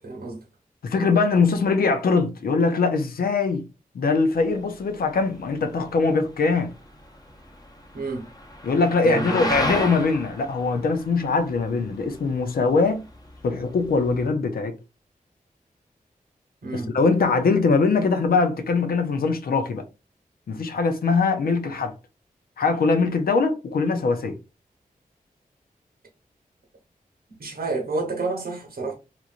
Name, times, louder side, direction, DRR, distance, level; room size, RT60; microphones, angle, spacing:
voice 1, 0.0-0.4 7.9-8.3 9.0-9.6 16.6-17.0 27.4-28.9, right 3 dB, 80° right, 1.0 m, -29 dB
voice 2, 0.8-3.6 3.9-6.7 8.6-13.1 13.4-14.7 16.7-19.8 20.5-21.9 22.6-24.4, left 4 dB, 85° left, 0.5 m, -22 dB
sound 1, 4.4-14.3, left 1 dB, 25° left, 0.8 m, -34 dB
3.0 x 2.5 x 2.4 m
wide cardioid pair, 70°, 15 cm